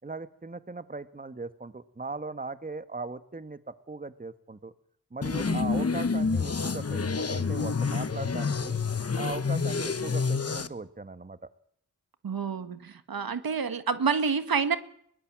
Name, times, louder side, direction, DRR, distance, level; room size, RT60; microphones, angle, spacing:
voice 1, 0.0-4.7 5.1-8.8 9.1-11.5, right 3 dB, 25° right, 12 dB, 1.4 m, -39 dB
sound 1, 5.2-10.7, left 5 dB, 45° left, 1.3 m, -28 dB
voice 2, 5.5-5.9 12.2-14.8, right 5 dB, 80° right, 11 dB, 1.6 m, -29 dB
22.0 x 19.0 x 7.5 m, 0.67 s
wide cardioid pair, 65°, 35 cm